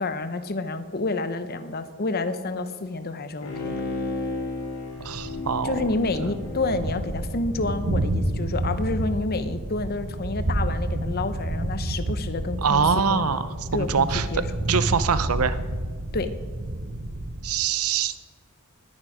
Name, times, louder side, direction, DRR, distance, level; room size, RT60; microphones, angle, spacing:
voice 1, 0.0-3.7 5.6-12.8 13.1-13.3 13.7-14.4 16.1-16.3, left 2 dB, 45° left, 11 dB, 0.9 m, -29 dB
Bowed string instrument, 3.4-8.0 8.4-8.5, left 2 dB, 80° left, 2.5 m, -34 dB
Thunder, 5.0-17.6, right 1 dB, 60° right, 0.9 m, -30 dB
voice 2, 5.0-5.8 6.2-6.3 12.6-14.3 14.7-15.6 17.4-18.2, right 6 dB, 85° right, 14 dB, 0.7 m, -24 dB
20.0 x 9.4 x 5.0 m, 1.5 s
head